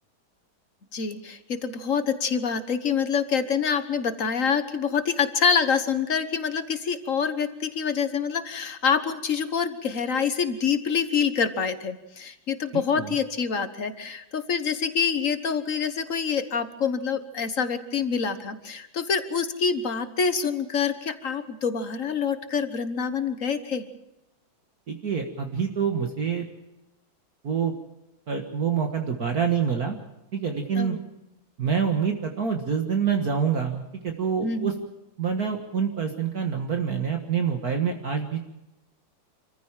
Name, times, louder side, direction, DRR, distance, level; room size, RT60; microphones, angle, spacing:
voice 1, 0.9-23.8 30.8-31.0 34.4-34.7, left 6 dB, 45° left, 10 dB, 1.5 m, -26 dB
voice 2, 12.7-13.2 24.9-26.5 27.4-27.7 28.3-30.0 30.3-31.0 31.6-34.7 35.2-38.4, right 7 dB, 50° right, 4 dB, 2.0 m, -26 dB
26.0 x 14.5 x 7.4 m, 0.93 s
omnidirectional pair, 2.2 m